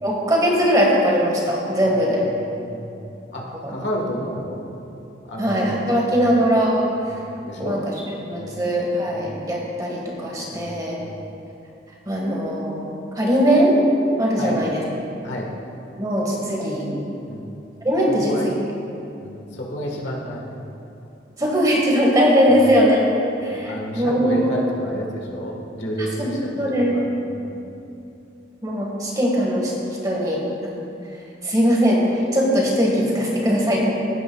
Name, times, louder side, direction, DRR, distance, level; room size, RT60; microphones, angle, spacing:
voice 1, 0.0-2.2 3.6-3.7 5.4-6.9 7.6-11.0 12.1-13.8 14.2-14.8 16.0-17.0 17.8-18.5 21.4-23.0 23.4-24.5 26.0-26.9 28.6-29.7 30.0-30.8 31.4-32.0 32.3-33.8, equal, 20° right, -3 dB, 1.5 m, -20 dB
voice 2, 2.5-3.0 3.3-4.5 5.3-6.3 7.1-7.8 8.3-8.6 9.1-9.3 10.5-10.7 11.0-11.2 14.4-14.6 15.2-15.5 17.3-17.4 18.1-18.5 19.2-20.6 22.5-22.6 23.4-26.7 27.3-27.6, equal, 75° left, -2 dB, 1.5 m, -31 dB
15.5 x 8.5 x 2.3 m, 2.8 s
head